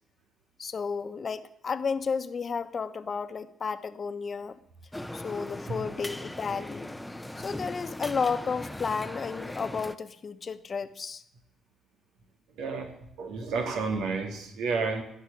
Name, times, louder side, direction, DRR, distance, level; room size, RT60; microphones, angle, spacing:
voice 1, 0.6-4.6 5.1-7.0 7.4-11.2, left 5 dB, 40° left, 10 dB, 1.1 m, -32 dB
Busy Coffee Shop, 4.9-10.0, left 1 dB, 5° left, 0.7 m, -39 dB
voice 2, 12.6-15.0, right 4 dB, 85° right, 4 dB, 2.9 m, -31 dB
16.5 x 6.6 x 10.0 m, 0.79 s
cardioid pair, 90°, 0 cm